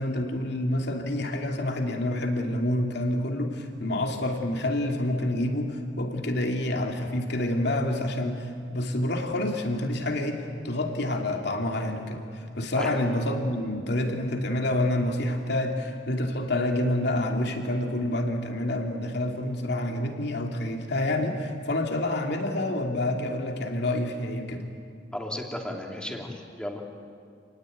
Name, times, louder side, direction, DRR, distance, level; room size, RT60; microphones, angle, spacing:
voice 1, 0.0-24.6, left 1 dB, 65° left, 3 dB, 2.8 m, -28 dB
voice 2, 25.1-26.8, left 1 dB, 5° left, 0 dB, 2.9 m, -34 dB
28.0 x 19.0 x 9.4 m, 2.3 s
head